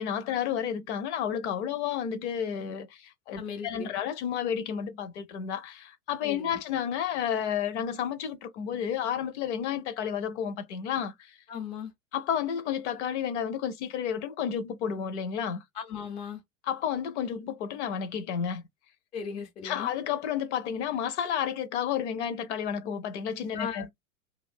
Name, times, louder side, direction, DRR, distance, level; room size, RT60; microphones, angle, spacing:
voice 1, 0.0-11.4 12.1-15.6 16.6-18.6 19.6-23.9, left 8 dB, 55° left, 0.8 m, -31 dB
voice 2, 3.4-3.9 6.2-6.6 11.5-11.9 15.8-16.4 19.1-19.9 23.5-23.9, left 6 dB, 15° left, 0.4 m, -37 dB
2.7 x 2.3 x 3.5 m
hypercardioid pair, 100°, 42 cm